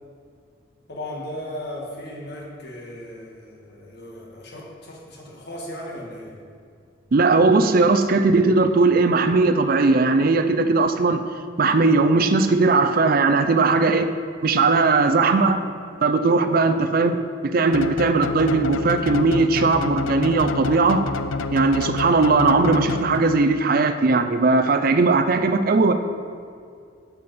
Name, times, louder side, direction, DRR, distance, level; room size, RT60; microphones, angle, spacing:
voice 1, 0.9-6.4 16.6-17.0, left 1 dB, 55° left, -2 dB, 1.8 m, -36 dB
voice 2, 7.1-11.2 11.6-14.1 14.4-15.6 16.0-17.2 17.4-21.0 21.5-25.9, right 3 dB, 45° right, 9 dB, 0.5 m, -18 dB
sound 1, 17.7-23.5, left 4 dB, 90° left, 0.5 m, -29 dB
8.5 x 8.3 x 4.3 m, 2.3 s
head